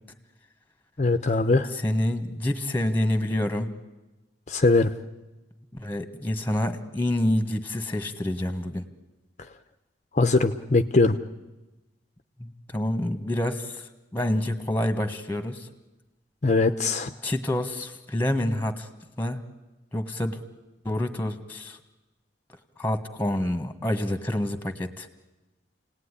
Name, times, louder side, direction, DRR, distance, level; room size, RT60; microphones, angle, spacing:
voice 1, 1.0-1.7 4.5-4.9 10.2-11.2 16.4-17.1, left 3 dB, 40° left, 8 dB, 0.8 m, -21 dB
voice 2, 1.7-3.7 5.7-8.9 12.4-15.7 17.2-18.9 19.2-19.4 19.9-20.4 20.8-21.8 22.8-25.1, left 1 dB, 10° left, 9 dB, 1.6 m, -27 dB
29.5 x 18.5 x 9.9 m, 1.1 s
head